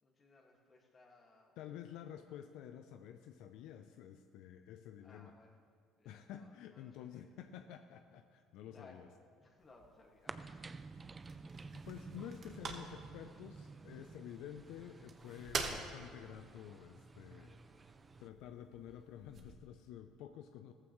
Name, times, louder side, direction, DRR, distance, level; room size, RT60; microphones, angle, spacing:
voice 1, 0.0-1.5 5.0-5.6 6.0-7.3 8.7-9.1 9.4-10.4, left 3 dB, 30° left, 0 dB, 1.9 m, -63 dB
voice 2, 1.6-5.4 6.0-9.1 11.9-17.6 18.2-20.7, left 10 dB, 80° left, 7 dB, 0.5 m, -50 dB
sound 1, 9.6-19.5, right 4 dB, 40° right, 1.3 m, -48 dB
sound 2, 10.3-18.3, right 4 dB, 25° right, 0.5 m, -52 dB
15.0 x 14.0 x 3.1 m, 2.2 s
cardioid pair, 115°, 0 cm